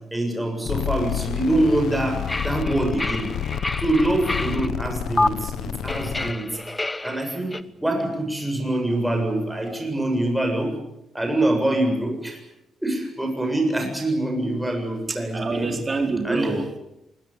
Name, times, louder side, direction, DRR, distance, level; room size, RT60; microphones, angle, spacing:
voice 1, 0.1-3.3 3.8-6.5 7.0-7.5 7.8-10.7 11.1-12.4 12.8-15.7 16.2-16.5, right 1 dB, 5° right, 3 dB, 7.4 m, -24 dB
sound 1, 0.7-6.3, left 9 dB, 75° left, 1.4 m, -29 dB
sound 2, 2.3-4.7 5.2-5.3 5.9-7.6, left 2 dB, 15° left, 1.0 m, -28 dB
voice 2, 15.1-16.8, right 3 dB, 25° right, 4 dB, 4.6 m, -26 dB
25.0 x 22.5 x 8.6 m, 0.87 s
cardioid pair, 140°, 0 cm